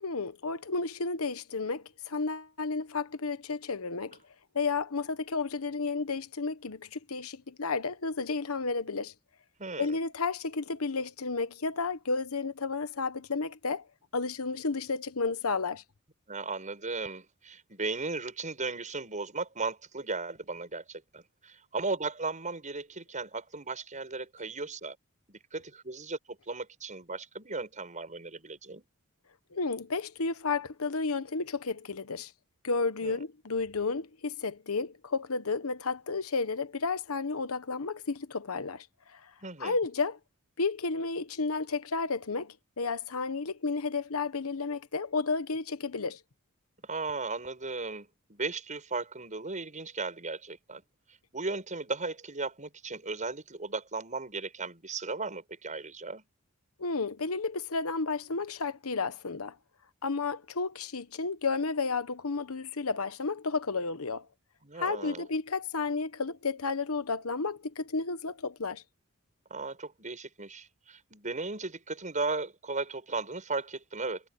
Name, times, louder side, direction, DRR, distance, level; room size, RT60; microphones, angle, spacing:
voice 1, 0.0-4.2 4.5-9.1 9.8-13.8 14.1-15.8 29.5-32.3 32.6-39.3 39.6-40.2 40.6-46.2 56.8-59.5 60.0-64.3 64.8-68.8, left 4 dB, 70° left, 1.1 m, -32 dB
voice 2, 9.6-10.0 16.3-25.0 25.3-28.8 33.0-33.2 39.4-39.8 46.8-50.8 51.3-56.3 64.6-65.3 69.5-74.3, right 3 dB, 35° right, 7.5 m, -36 dB
head